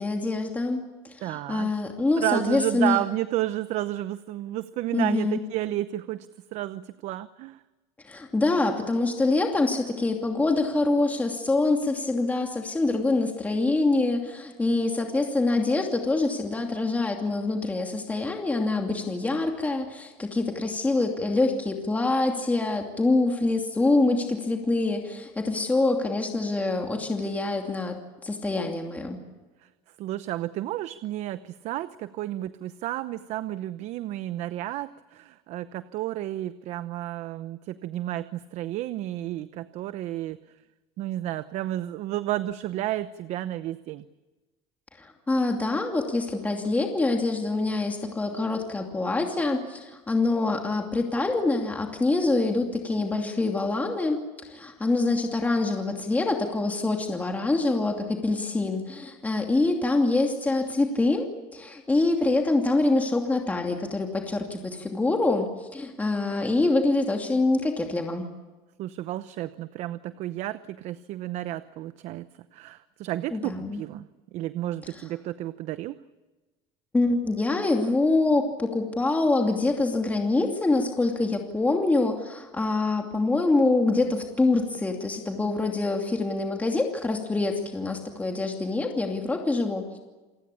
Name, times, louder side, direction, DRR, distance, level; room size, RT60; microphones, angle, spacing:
voice 1, 0.0-3.0 4.9-5.4 8.0-28.0 28.2-29.2 45.0-68.3 73.3-73.8 76.9-90.0, left 2 dB, 10° left, 2 dB, 2.7 m, -25 dB
voice 2, 1.2-1.8 2.2-7.6 29.6-29.7 30.0-40.4 41.0-44.0 68.8-72.3 72.5-74.1 74.3-75.9, right 14 dB, 55° right, 13 dB, 0.8 m, -32 dB
28.5 x 19.0 x 8.5 m, 1.2 s
cardioid pair, 130°, 14 cm